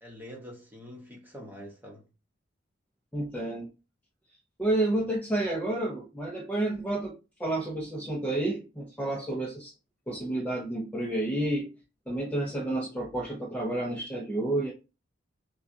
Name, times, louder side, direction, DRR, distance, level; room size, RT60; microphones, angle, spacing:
voice 1, 0.0-2.0, equal, 10° right, 1.1 m, -45 dB
voice 2, 3.1-3.7 4.6-9.7 10.1-11.7 12.1-14.7, right 1 dB, 10° left, 0.6 m, -30 dB
5.8 x 2.4 x 2.7 m
head